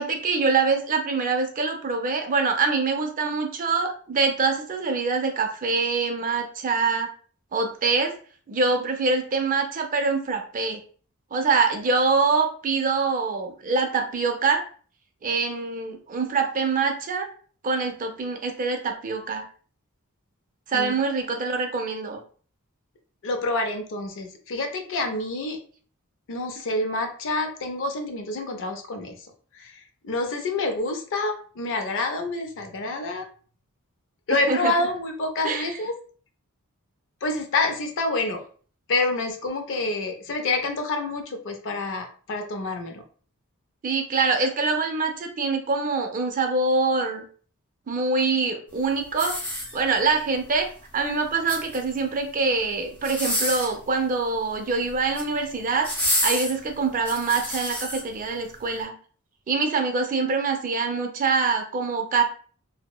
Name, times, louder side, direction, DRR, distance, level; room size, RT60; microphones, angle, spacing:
voice 1, 0.0-7.1 7.5-8.1 8.5-10.8 11.3-14.6 15.2-17.3 17.6-19.4 20.7-22.2 34.5-34.7 35.4-35.7 43.8-47.2 47.9-49.4 49.7-50.7 50.9-55.9 56.2-58.9 59.5-62.2, right 4 dB, 40° right, 4 dB, 0.4 m, -24 dB
voice 2, 23.2-25.6 26.3-29.1 29.5-33.3 34.3-35.9 37.2-38.4 38.9-43.0, left 2 dB, 60° left, 5 dB, 0.5 m, -27 dB
sound 1, 49.1-50.1 51.2-52.0 53.0-53.8 54.9-55.3 55.8-58.0 58.6-58.7, left 1 dB, 10° left, 0.8 m, -28 dB
2.8 x 2.0 x 2.2 m, 0.43 s
head